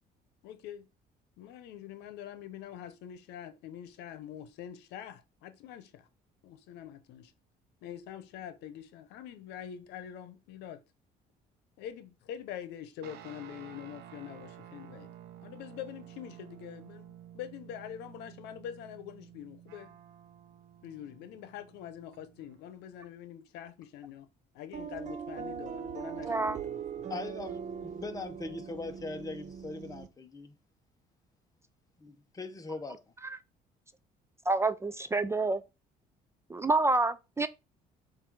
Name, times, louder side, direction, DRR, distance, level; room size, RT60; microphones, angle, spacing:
voice 1, 0.4-0.9 1.4-6.1 6.4-7.3 7.8-10.8 11.8-15.2 15.4-19.9 20.8-24.3 24.5-27.1, left 10 dB, 90° left, 0.8 m, -45 dB
sound 1, 13.0-22.7, right 10 dB, 80° right, 0.8 m, -52 dB
sound 2, 24.7-30.1, right 7 dB, 45° right, 0.7 m, -40 dB
voice 2, 26.2-26.6 33.2-33.4 34.5-35.6 36.5-37.5, right 2 dB, 15° right, 0.3 m, -28 dB
voice 3, 27.1-30.5 32.0-33.0, left 3 dB, 20° left, 1.0 m, -40 dB
7.5 x 2.7 x 4.7 m
cardioid pair, 110°, 17 cm